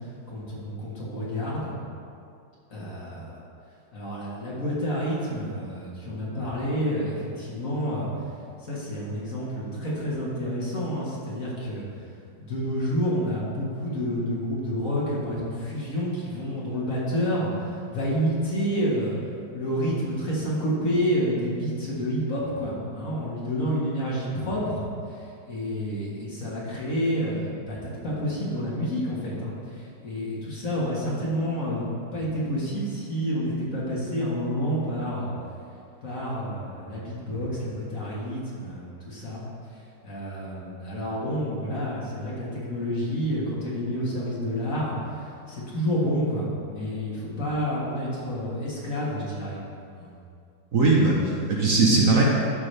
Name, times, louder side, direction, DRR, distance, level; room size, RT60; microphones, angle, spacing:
voice 1, 0.3-1.8 2.7-3.4 3.9-8.1 8.6-11.9 12.4-19.1 19.5-25.2 25.5-35.4 36.0-39.4 40.0-44.9 45.2-49.6 50.0-50.1, equal, 50° left, -6 dB, 2.1 m, -29 dB
voice 2, 50.7-52.2, right 3 dB, 55° right, -3 dB, 1.3 m, -20 dB
12.0 x 6.0 x 3.4 m, 2.4 s
omnidirectional pair, 1.9 m